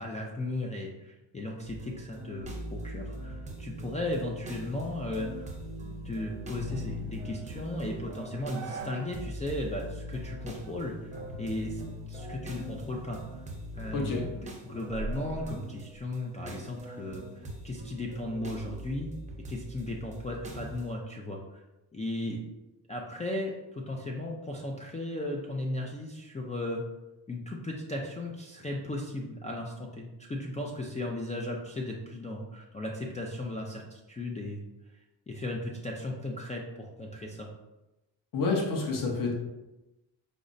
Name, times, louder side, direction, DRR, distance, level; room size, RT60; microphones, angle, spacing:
voice 1, 0.0-5.5 6.0-11.1 11.4-11.8 12.1-13.4 13.7-14.3 14.6-19.1 19.5-21.6 21.9-22.4 22.9-26.8 27.3-34.6 35.3-37.5, left 1 dB, 15° left, -1 dB, 0.3 m, -36 dB
sound 1, 1.6-20.9, equal, 15° right, 0.6 m, -41 dB
sound 2, 4.9-9.3 9.7-9.8 10.4-10.8 11.1-13.2 13.6-16.1, right 3 dB, 75° right, 0.6 m, -45 dB
voice 2, 13.9-14.2 38.3-39.3, left 3 dB, 45° left, 0 dB, 0.9 m, -28 dB
5.0 x 2.1 x 2.5 m, 1.0 s
cardioid pair, 85°, 47 cm